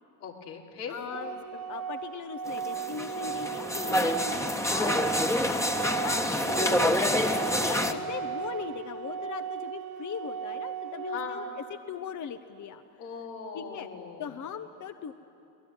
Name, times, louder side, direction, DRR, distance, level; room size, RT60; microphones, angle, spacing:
voice 1, 0.2-1.0 7.5-8.0 11.1-11.4 13.0-14.2, left 6 dB, 80° left, -2 dB, 3.5 m, -40 dB
voice 2, 0.9-12.8 13.5-13.9 14.2-15.1, left 8 dB, 40° left, 9 dB, 1.0 m, -40 dB
Organ, 1.1-12.1, right 7 dB, 55° right, 2.6 m, -36 dB
sound 1, 2.5-7.9, left 1 dB, 5° left, 1.4 m, -27 dB
23.5 x 19.5 x 9.6 m, 2.7 s
hypercardioid pair, 75°, 46 cm